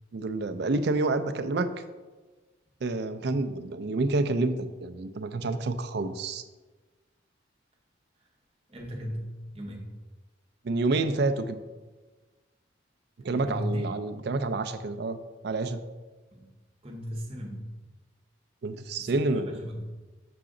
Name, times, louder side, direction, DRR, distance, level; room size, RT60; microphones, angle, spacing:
voice 1, 0.1-1.7 2.8-6.4 10.6-11.6 13.2-15.2 15.4-15.8 18.6-19.6, right 3 dB, 55° right, 9 dB, 0.4 m, -28 dB
voice 2, 8.7-9.9 13.3-13.9 16.3-16.5 16.8-17.7 19.0-19.8, equal, 30° right, -1 dB, 1.0 m, -36 dB
6.9 x 5.0 x 3.7 m, 1.3 s
head